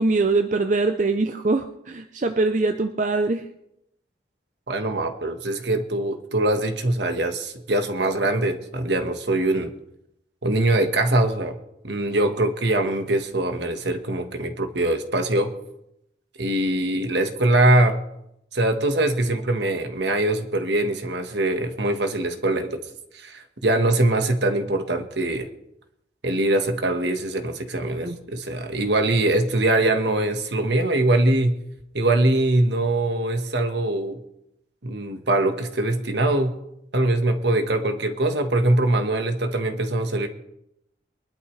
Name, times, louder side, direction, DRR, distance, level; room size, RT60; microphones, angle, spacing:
voice 1, 0.0-3.5 28.0-28.2, right 3 dB, 40° right, 7 dB, 0.6 m, -23 dB
voice 2, 4.7-9.7 10.4-11.6 11.8-15.5 16.4-18.0 18.5-22.8 23.1-25.5 26.2-31.6 31.9-34.2 34.8-36.6 36.9-40.3, right 1 dB, 70° right, 7 dB, 1.4 m, -22 dB
22.5 x 12.0 x 3.3 m, 0.81 s
head